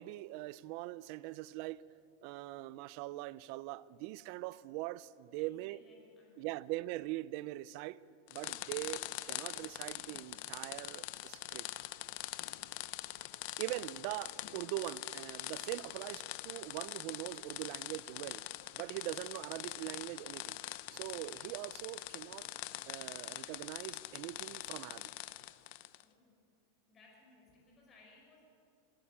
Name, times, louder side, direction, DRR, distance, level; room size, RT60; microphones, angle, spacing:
voice 1, 0.0-1.8 2.2-5.8 6.4-8.0 8.3-11.7 13.6-18.4 18.8-20.6 20.9-22.5 22.9-25.1, right 17 dB, 50° right, 0.5 m, -42 dB
voice 2, 5.4-6.7 26.0-26.4 26.9-28.4, left 3 dB, 20° left, 5.7 m, -64 dB
sound 1, 8.3-26.0, left 17 dB, 55° left, 0.7 m, -44 dB
21.5 x 16.5 x 8.9 m
supercardioid pair, 155°, 0 cm